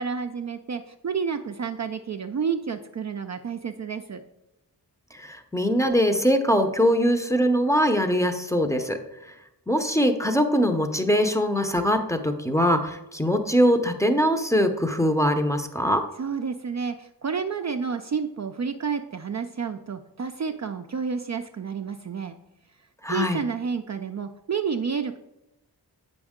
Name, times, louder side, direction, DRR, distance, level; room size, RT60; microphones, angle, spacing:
voice 1, 0.0-4.2 16.2-22.4 23.1-25.2, right 6 dB, 45° right, 6 dB, 0.4 m, -30 dB
voice 2, 5.1-9.0 9.7-16.0 23.0-23.4, equal, 5° left, 5 dB, 0.7 m, -22 dB
7.8 x 5.3 x 3.6 m, 0.90 s
wide cardioid pair, 50°, 41 cm